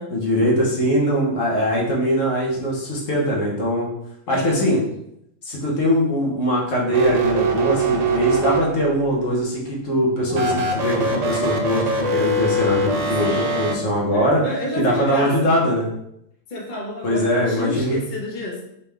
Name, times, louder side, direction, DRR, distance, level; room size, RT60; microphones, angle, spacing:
voice 1, 0.1-3.9 4.3-4.8 5.4-14.4 14.8-15.9 17.0-18.0, equal, 75° left, -3 dB, 1.5 m, -21 dB
voice 2, 4.3-4.9 13.2-15.5 16.5-18.6, left 1 dB, 40° left, -2 dB, 1.0 m, -30 dB
sound 1, 6.9-9.0 10.3-13.7, right 2 dB, 50° right, 0.5 m, -23 dB
4.1 x 3.5 x 3.3 m, 0.78 s
omnidirectional pair, 1.3 m